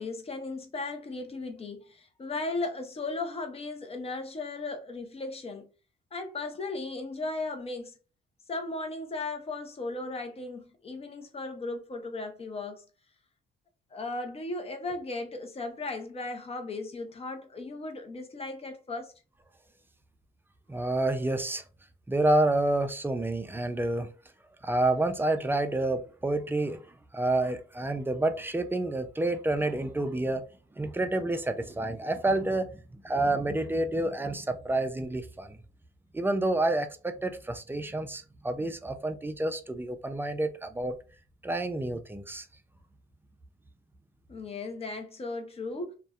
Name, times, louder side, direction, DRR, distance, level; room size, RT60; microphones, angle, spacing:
voice 1, 0.0-5.7 6.1-8.0 8.5-12.8 13.9-19.1 44.3-45.9, left 3 dB, 30° left, 0.6 m, -36 dB
voice 2, 20.7-21.6 22.1-24.1 24.6-26.9 27.1-30.5 30.8-35.6 36.1-41.0 41.4-42.5, right 2 dB, 10° right, 0.3 m, -29 dB
2.6 x 2.1 x 2.3 m
cardioid pair, 90°, 20 cm